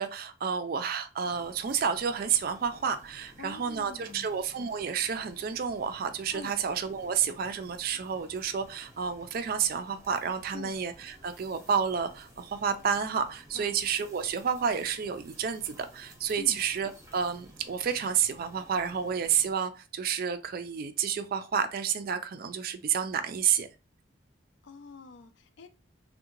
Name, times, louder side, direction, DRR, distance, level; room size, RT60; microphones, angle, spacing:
voice 1, 0.0-23.7, right 7 dB, 45° right, 0.3 m, -30 dB
sound 1, 1.2-19.5, equal, 15° right, 0.7 m, -55 dB
voice 2, 3.4-4.3 6.3-6.5 10.5-10.7 13.5-13.8 16.4-16.6 24.6-25.7, left 3 dB, 65° left, 0.4 m, -45 dB
3.5 x 2.1 x 2.9 m
head